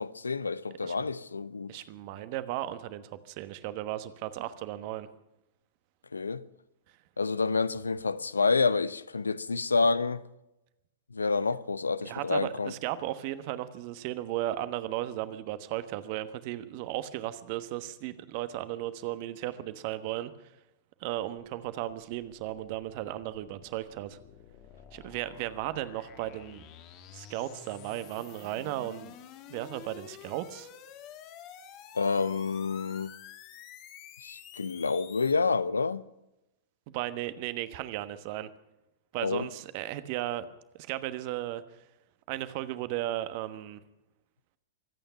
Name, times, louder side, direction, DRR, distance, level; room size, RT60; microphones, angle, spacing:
voice 1, 0.0-1.7 6.1-6.4 7.2-10.2 11.1-12.7 32.0-33.1 34.2-36.0 39.2-39.5, left 4 dB, 80° left, 0.6 m, -28 dB
voice 2, 1.7-5.1 12.0-20.5 21.0-24.2 24.9-26.6 27.1-29.1 29.5-30.7 36.9-38.5 39.1-40.5 40.9-41.8 42.3-43.8, right 14 dB, 45° right, 1.2 m, -35 dB
sound 1, 21.4-35.3, left 9 dB, 40° left, 1.8 m, -50 dB
24.0 x 9.1 x 5.7 m
figure-of-eight pair, 100°, 0 cm